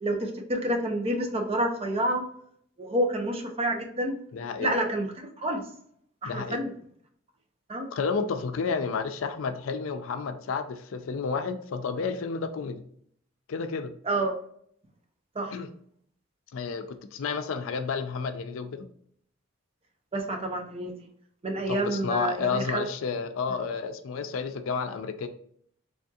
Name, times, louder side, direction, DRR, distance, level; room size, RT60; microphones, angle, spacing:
voice 1, 0.0-2.2 2.8-4.2 4.6-5.1 5.4-5.6 6.2-6.7 7.7-7.9 14.1-14.3 15.4-15.6 20.1-20.9 21.4-22.9, right 1 dB, 30° right, 3 dB, 0.6 m, -28 dB
voice 2, 4.3-4.7 6.2-6.6 7.9-12.8 13.5-13.9 15.5-15.7 16.5-18.9 21.7-25.3, left 5 dB, 90° left, 9 dB, 0.4 m, -31 dB
3.5 x 2.6 x 2.3 m, 0.65 s
head